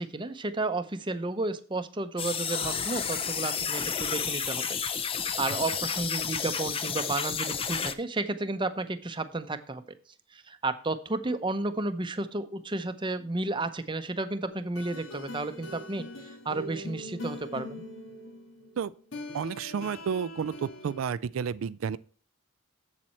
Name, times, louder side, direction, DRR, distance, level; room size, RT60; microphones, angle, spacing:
voice 1, 0.0-4.8 5.1-9.8 10.3-17.8, right 2 dB, 25° right, 0.7 m, -32 dB
sound 1, 2.2-7.9, left 7 dB, 25° left, 0.5 m, -31 dB
sound 2, 14.5-21.1, left 1 dB, 75° left, 2.1 m, -42 dB
voice 2, 19.3-22.0, right 7 dB, 80° right, 0.4 m, -31 dB
7.5 x 7.5 x 4.3 m
head